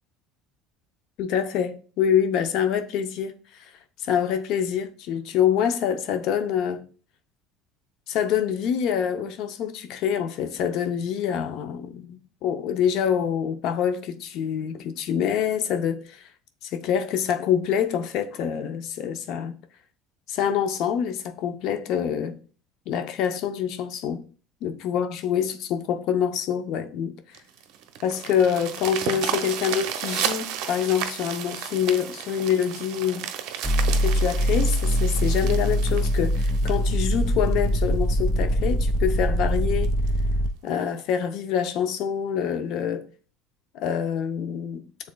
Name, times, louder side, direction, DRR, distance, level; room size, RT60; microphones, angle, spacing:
voice 1, 1.2-3.7 4.0-6.9 8.1-16.3 16.6-19.6 20.3-22.4 22.9-24.2 24.6-27.1 28.0-33.3 34.0-39.9 40.6-43.1 43.7-44.9, left 8 dB, 65° left, 0.5 m, -26 dB
sound 1, 27.3-37.8 38.4-38.5 38.9-39.0 39.4-39.5 39.8-40.1 41.0-41.1, right 9 dB, 65° right, 0.6 m, -33 dB
sound 2, 33.6-40.5, equal, ahead, 0.5 m, -23 dB
6.3 x 3.6 x 2.2 m
hypercardioid pair, 80°, 0 cm